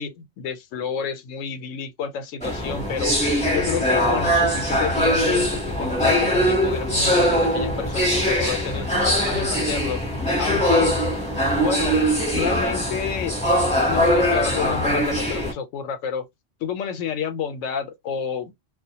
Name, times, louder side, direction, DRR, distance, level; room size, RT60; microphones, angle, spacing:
voice 1, 0.0-3.2 3.5-10.0 10.4-11.0 11.6-13.4 13.9-16.3 16.6-18.5, left 7 dB, 90° left, 0.9 m, -29 dB
sound 1, 2.4-15.5, equal, 5° left, 0.9 m, -22 dB
2.3 x 2.1 x 2.8 m
omnidirectional pair, 1.3 m